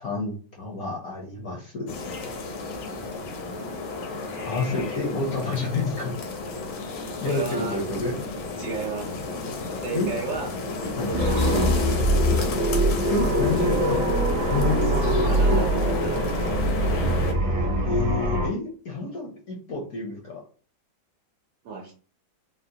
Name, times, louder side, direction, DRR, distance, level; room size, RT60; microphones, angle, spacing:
voice 1, 0.0-1.9 4.4-6.1 7.0-8.2 9.9-10.1 11.0-11.1 13.1-14.0 14.4-15.6 17.8-20.4, left 3 dB, 70° left, -1 dB, 0.9 m, -29 dB
sound 1, 1.9-17.3, left 3 dB, 85° left, 1.5 m, -32 dB
voice 2, 7.2-7.8 8.6-9.2 9.7-10.5 10.8-11.9 15.3-16.5 21.6-21.9, right 4 dB, 70° right, -2 dB, 1.1 m, -34 dB
sound 2, 11.1-18.5, right 1 dB, 45° right, 0.8 m, -23 dB
3.7 x 2.0 x 2.6 m, 0.40 s
omnidirectional pair, 2.1 m